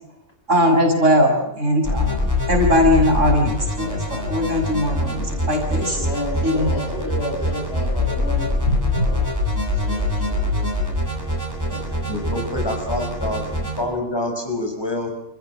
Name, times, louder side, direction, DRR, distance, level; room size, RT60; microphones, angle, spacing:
voice 1, 0.5-6.1 6.4-6.7 8.7-9.0, equal, 70° right, 2 dB, 6.5 m, -20 dB
sound 1, 1.8-13.8, left 1 dB, 15° right, 7.0 m, -24 dB
voice 2, 5.8-8.6 8.9-9.3 9.7-10.9, left 2 dB, 50° left, 3 dB, 6.4 m, -32 dB
voice 3, 11.7-13.4 13.8-15.1, left 2 dB, 20° left, 3 dB, 5.9 m, -27 dB
30.0 x 15.5 x 7.7 m, 0.84 s
omnidirectional pair, 1.3 m